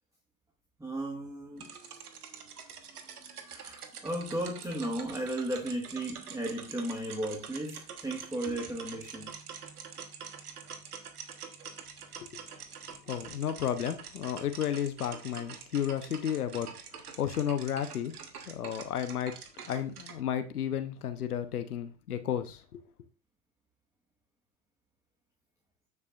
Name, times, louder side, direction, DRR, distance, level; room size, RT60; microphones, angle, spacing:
voice 1, 0.8-1.7 3.3-9.3, right 1 dB, 5° right, 1.7 m, -35 dB
sound 1, 1.6-20.2, right 6 dB, 90° right, 1.4 m, -46 dB
voice 2, 13.1-18.1 18.5-19.4 19.7-22.8, left 9 dB, 90° left, 1.0 m, -33 dB
9.5 x 8.3 x 2.5 m
hypercardioid pair, 85°, 44 cm